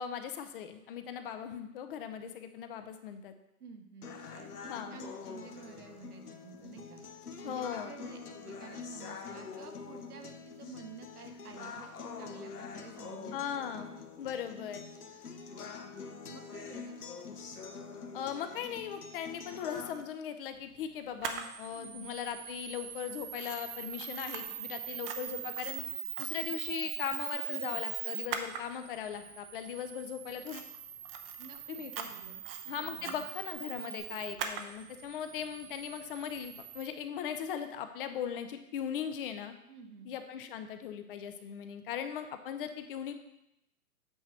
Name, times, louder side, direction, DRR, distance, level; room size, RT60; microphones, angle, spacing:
voice 1, 0.0-3.3 4.7-5.0 7.4-7.9 13.3-14.8 18.1-25.9 26.2-30.7 31.7-32.1 32.7-39.5 40.1-43.1, left 8 dB, 40° left, 8 dB, 0.7 m, -39 dB
voice 2, 3.6-7.0 7.4-13.4 13.7-14.1 16.3-17.0 21.7-22.2 31.4-32.4 32.8-33.2 39.7-40.1, right 5 dB, 80° right, 5 dB, 1.4 m, -51 dB
sound 1, 4.0-20.0, left 5 dB, 85° left, 1.0 m, -45 dB
Camera, 21.2-36.9, right 9 dB, 40° right, 0.8 m, -41 dB
8.6 x 3.1 x 6.4 m, 0.85 s
hypercardioid pair, 130°, 45 cm